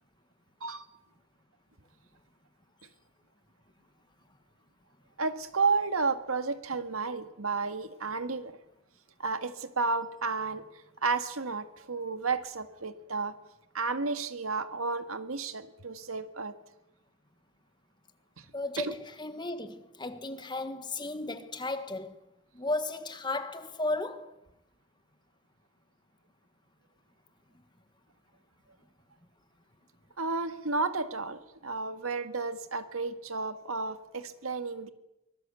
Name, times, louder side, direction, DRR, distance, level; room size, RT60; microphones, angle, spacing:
voice 1, 5.2-8.6 9.2-10.6 11.0-13.3 13.7-16.5 18.4-18.5 18.8-18.9 30.2-34.9, right 4 dB, 90° right, 1.8 m, -32 dB
voice 2, 18.5-22.2 22.5-24.3, left 2 dB, 20° left, 1.6 m, -34 dB
24.0 x 21.5 x 8.4 m
head